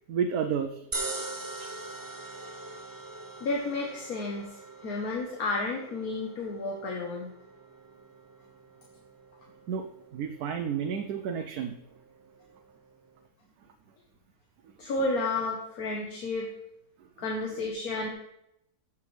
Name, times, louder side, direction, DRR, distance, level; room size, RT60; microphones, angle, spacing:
voice 1, 0.1-0.9 1.6-1.7 9.7-9.9 10.1-11.8 14.6-14.7, right 7 dB, 75° right, 6 dB, 1.1 m, -31 dB
sound 1, 0.9-13.3, right 2 dB, 30° right, 0.4 m, -43 dB
voice 2, 3.4-4.5 4.8-7.3 14.8-16.5 17.2-18.1, left 2 dB, 70° left, 0 dB, 1.7 m, -31 dB
15.0 x 7.2 x 3.3 m, 0.82 s
omnidirectional pair, 1.6 m